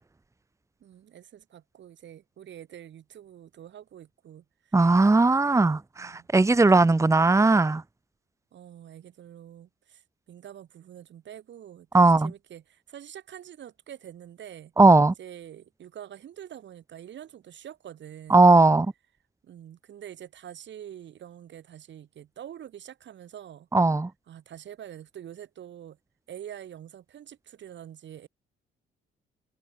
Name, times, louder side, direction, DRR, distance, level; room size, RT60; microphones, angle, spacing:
voice 1, 0.8-4.9 6.0-6.3 8.5-10.0 10.3-14.7 15.2-18.5 19.4-23.7 24.3-26.0 26.3-28.3, right 10 dB, 65° right, 5.7 m, -45 dB
voice 2, 4.7-7.8 11.9-12.3 14.8-15.1 18.3-18.9 23.7-24.1, right 3 dB, 15° right, 1.2 m, -18 dB
cardioid pair, 90°, 20 cm